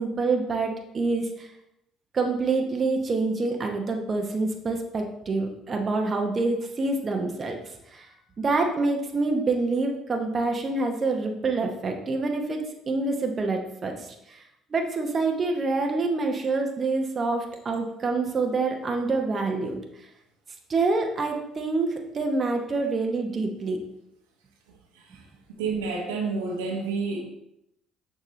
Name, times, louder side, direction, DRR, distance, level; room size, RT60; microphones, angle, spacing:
voice 1, 0.0-1.5 2.1-7.6 7.9-8.1 8.4-12.6 12.9-14.4 14.7-19.8 20.7-23.8, right 3 dB, 40° right, 3 dB, 1.0 m, -26 dB
voice 2, 25.6-27.2, right 4 dB, 80° right, 0 dB, 1.1 m, -28 dB
6.5 x 5.2 x 3.1 m, 0.80 s
hypercardioid pair, 55°, 0 cm